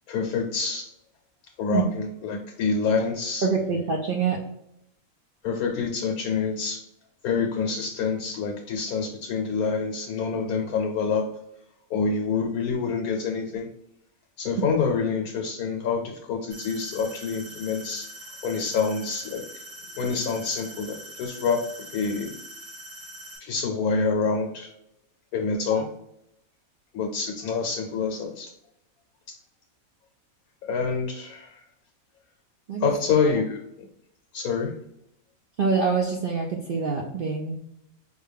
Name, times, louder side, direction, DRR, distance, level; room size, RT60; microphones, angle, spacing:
voice 1, 0.1-0.9 1.6-3.5 5.4-6.8 7.2-11.2 11.9-13.7 14.4-18.1 18.4-19.4 20.0-21.6 21.9-22.3 23.4-24.7 25.3-25.9 26.9-28.5 30.6-31.6 32.8-33.9 34.3-34.7, left 5 dB, 80° left, 3 dB, 1.1 m, -27 dB
voice 2, 3.4-4.4 25.7-25.9 32.7-32.9 35.6-37.6, right 5 dB, 65° right, -1 dB, 0.5 m, -25 dB
sound 1, 16.5-23.4, right 1 dB, 50° right, 2.0 m, -43 dB
5.0 x 2.2 x 3.4 m, 0.79 s
omnidirectional pair, 1.5 m